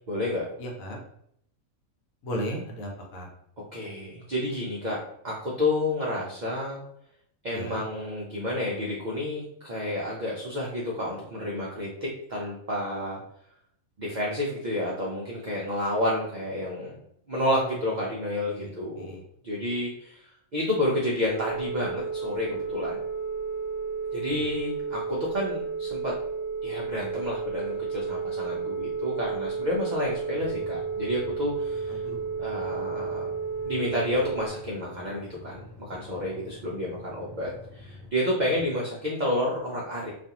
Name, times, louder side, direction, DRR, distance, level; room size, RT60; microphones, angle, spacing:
voice 1, 0.1-0.5 3.7-6.8 7.4-13.2 14.0-17.0 17.3-19.1 19.4-23.0 24.1-26.1 26.6-32.0 32.4-33.3 33.6-40.1, left 1 dB, 65° right, -4 dB, 0.4 m, -30 dB
voice 2, 0.6-1.0 2.2-3.3 7.5-7.8 18.5-19.2 24.3-24.6 31.9-32.3 38.5-38.6, equal, 80° left, 0 dB, 1.1 m, -36 dB
Telephone, 21.3-34.5, right 5 dB, 25° left, 0.7 m, -32 dB
sound 1, 30.3-38.1, left 2 dB, ahead, 1.2 m, -47 dB
2.4 x 2.4 x 2.8 m, 0.69 s
omnidirectional pair, 1.4 m